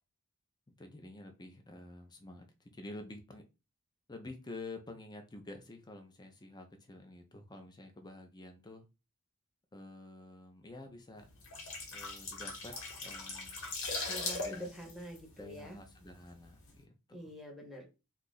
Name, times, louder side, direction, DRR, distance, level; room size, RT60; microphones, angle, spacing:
voice 1, 0.8-2.5 2.7-3.4 4.1-8.9 9.7-11.3 11.9-12.7 13.0-13.6 14.4-14.7 15.4-17.3, left 2 dB, 20° left, 0.6 m, -49 dB
sound 1, 11.3-16.1 16.4-16.6, left 3 dB, 65° left, 1.0 m, -40 dB
voice 2, 14.0-15.8 17.1-17.9, equal, ahead, 0.9 m, -46 dB
2.8 x 2.4 x 3.9 m
head